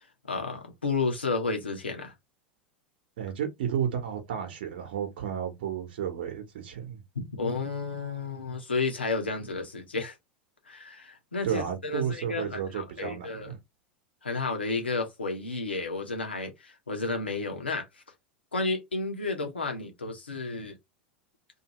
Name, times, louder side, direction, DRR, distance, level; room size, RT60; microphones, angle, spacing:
voice 1, 0.3-2.1 7.1-10.1 10.7-13.5 14.2-17.8 18.5-20.8, left 3 dB, 90° left, 1.0 m, -32 dB
voice 2, 3.2-7.0 11.4-13.6, right 8 dB, 65° right, 1.1 m, -32 dB
2.7 x 2.7 x 2.9 m
hypercardioid pair, 85°, 6 cm